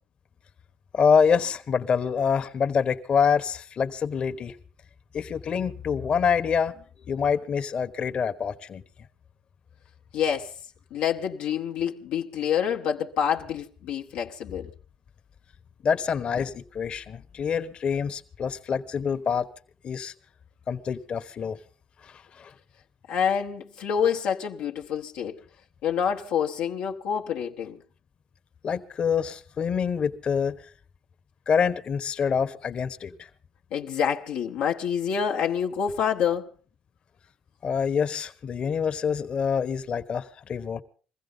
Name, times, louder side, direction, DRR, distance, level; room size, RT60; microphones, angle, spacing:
voice 1, 0.9-4.5 5.1-8.8 15.8-19.5 19.8-20.1 20.7-21.6 22.0-22.5 28.6-30.7 31.5-33.3 37.6-40.8, left 6 dB, 50° left, 1.1 m, -26 dB
voice 2, 10.1-10.5 10.9-14.7 23.1-25.4 25.8-27.8 33.7-36.5, left 8 dB, 85° left, 0.9 m, -27 dB
22.0 x 15.5 x 3.9 m
supercardioid pair, 70°, 2 cm